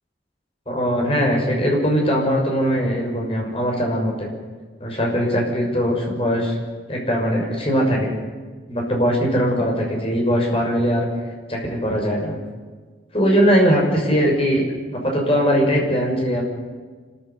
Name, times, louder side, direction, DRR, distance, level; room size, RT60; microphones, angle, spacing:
voice 1, 0.7-4.3 4.8-6.5 6.9-8.1 8.7-11.1 11.5-12.4 13.1-14.7 14.9-16.4, equal, 30° left, 0 dB, 6.2 m, -20 dB
28.5 x 14.0 x 8.4 m, 1.5 s
head